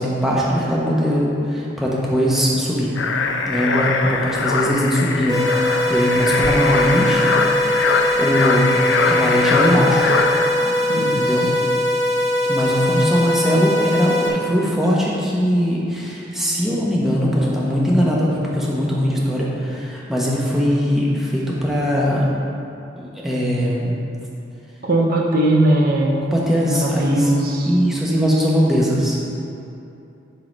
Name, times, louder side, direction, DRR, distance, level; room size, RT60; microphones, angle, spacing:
voice 1, 0.0-2.9 3.5-8.7 9.0-10.1 10.6-11.5 12.5-22.3 23.0-23.9 26.2-27.3 27.7-29.2, equal, ahead, -6 dB, 1.1 m, -20 dB
sound 1, 3.0-10.5, left 4 dB, 80° left, 0.6 m, -22 dB
sound 2, 5.3-14.3, left 1 dB, 20° right, 1.2 m, -21 dB
voice 2, 10.9-11.5 24.8-26.2 26.7-27.7, right 1 dB, 50° right, -1 dB, 0.8 m, -19 dB
11.0 x 3.9 x 5.3 m, 2.7 s
head